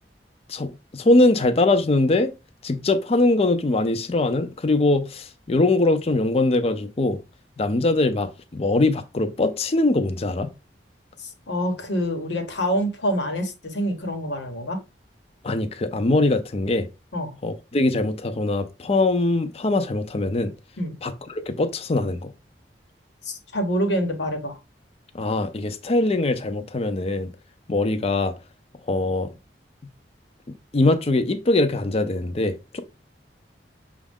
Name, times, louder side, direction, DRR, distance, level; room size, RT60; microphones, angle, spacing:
voice 1, 0.5-2.3 2.6-7.2 7.6-10.5 15.4-16.9 17.4-20.5 21.0-22.3 25.1-27.3 27.7-28.3 28.9-29.3 30.7-32.8, left 2 dB, 35° left, 0.5 m, -22 dB
voice 2, 11.2-14.8 17.1-17.3 20.8-21.0 23.2-24.6, equal, 90° left, 1.2 m, -26 dB
6.2 x 2.4 x 3.5 m
head